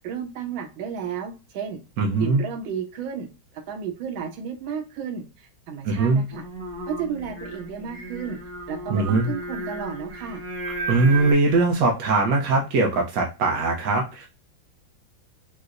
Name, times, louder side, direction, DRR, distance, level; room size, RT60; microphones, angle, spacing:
voice 1, 0.0-1.8 2.2-3.3 3.5-6.4 6.9-8.4 8.7-10.4, right 7 dB, 85° right, 5 dB, 1.5 m, -33 dB
voice 2, 2.0-2.4 5.8-6.2 8.9-9.3 10.9-14.3, right 3 dB, 70° right, 0 dB, 0.8 m, -21 dB
Singing, 6.3-11.3, right 2 dB, 50° right, 1.3 m, -34 dB
4.6 x 2.0 x 2.4 m, 0.29 s
omnidirectional pair, 2.1 m